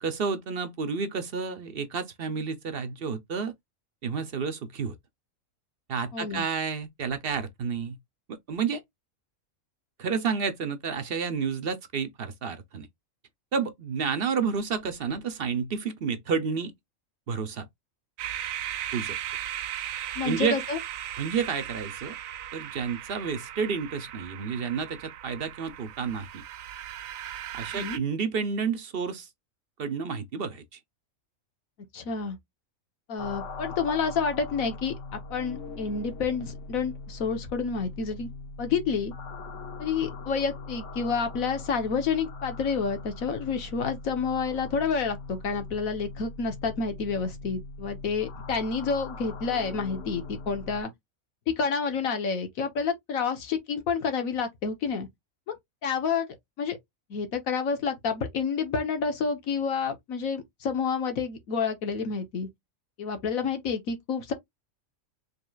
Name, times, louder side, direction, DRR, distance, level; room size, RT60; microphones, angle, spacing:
voice 1, 0.0-3.5 4.0-5.0 5.9-8.0 8.3-8.8 10.0-12.9 13.5-16.7 17.3-17.7 18.9-19.2 20.2-20.6 21.2-22.1 22.5-26.4 27.5-29.3 29.8-30.8, right 6 dB, 55° right, 0.8 m, -30 dB
voice 2, 6.1-6.4 20.1-20.8 27.7-28.0 31.9-32.4 33.1-38.3 38.6-39.1 39.8-50.9 51.5-55.1 55.5-55.6 55.8-56.3 56.6-56.8 57.1-62.5 63.0-64.3, left 5 dB, 85° left, 1.5 m, -29 dB
sound 1, 18.2-28.0, right 11 dB, 85° right, 1.0 m, -37 dB
sound 2, 33.2-50.8, left 3 dB, 65° left, 1.2 m, -41 dB
5.3 x 3.3 x 2.3 m
omnidirectional pair, 1.4 m